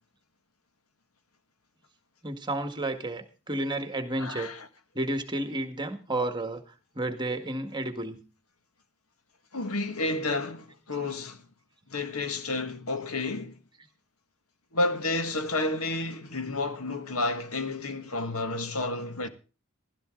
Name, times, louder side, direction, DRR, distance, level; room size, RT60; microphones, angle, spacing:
voice 1, 2.2-4.5 5.0-6.6 7.0-8.2, right 1 dB, 20° right, 1.8 m, -31 dB
voice 2, 4.2-4.7 9.5-11.4 11.9-13.5 14.7-19.3, left 2 dB, 80° left, 1.7 m, -31 dB
15.5 x 12.5 x 3.9 m
head